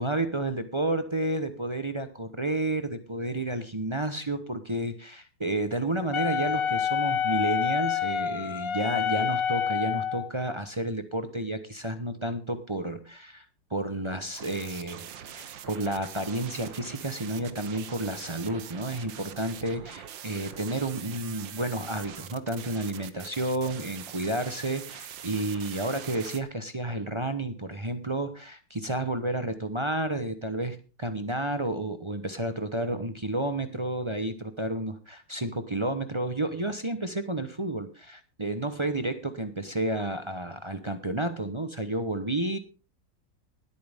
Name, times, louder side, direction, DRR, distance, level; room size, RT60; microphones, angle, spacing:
voice 1, 0.0-13.4 13.7-15.0 15.3-42.6, right 1 dB, 25° right, 8 dB, 0.6 m, -31 dB
Wind instrument woodwind instrument, 6.1-10.3, left 8 dB, 90° left, 0.5 m, -27 dB
sound 1, 14.2-26.4, right 9 dB, 90° right, 1.7 m, -43 dB
19.5 x 8.6 x 3.6 m, 0.33 s
omnidirectional pair, 2.0 m